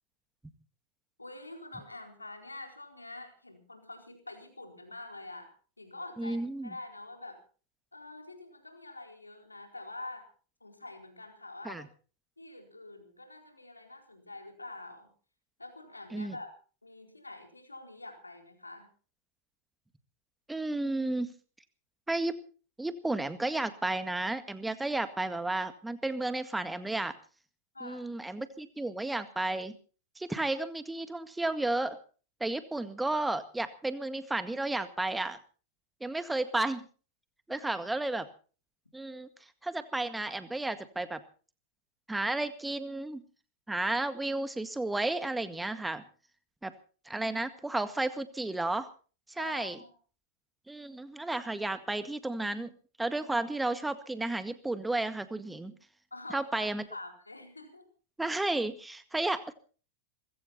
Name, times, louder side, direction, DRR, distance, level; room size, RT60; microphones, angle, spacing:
voice 1, 1.2-5.5 5.8-7.4 7.9-10.3 10.6-11.8 12.4-15.1 15.6-16.5 16.8-18.9 27.7-28.1 37.5-37.7 49.4-49.9 56.1-57.9, left 2 dB, 80° left, 4 dB, 4.2 m, -46 dB
voice 2, 6.2-6.7 11.6-11.9 16.1-16.4 20.5-21.3 22.1-22.4 22.8-27.1 27.8-29.7 30.2-32.0 32.4-35.4 36.0-36.9 37.5-38.3 38.9-39.3 39.6-41.2 42.1-43.2 43.7-46.0 46.6-46.7 47.1-48.9 49.3-49.8 50.7-52.7 53.0-55.7 56.3-56.9 58.2-59.5, right 2 dB, 5° right, 11 dB, 1.8 m, -32 dB
20.5 x 16.0 x 4.3 m, 0.40 s
figure-of-eight pair, 90°, 0 cm